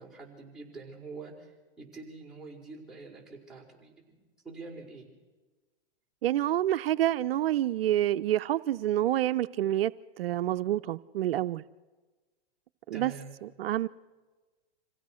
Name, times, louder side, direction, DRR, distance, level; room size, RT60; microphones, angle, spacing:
voice 1, 0.0-1.5 1.8-5.1 12.9-13.4, right 4 dB, ahead, 5.3 m, -46 dB
voice 2, 6.2-9.9 10.2-11.6 12.9-13.1 13.4-13.9, right 13 dB, 75° right, 0.6 m, -28 dB
26.5 x 16.5 x 6.3 m
hypercardioid pair, 130°, 30 cm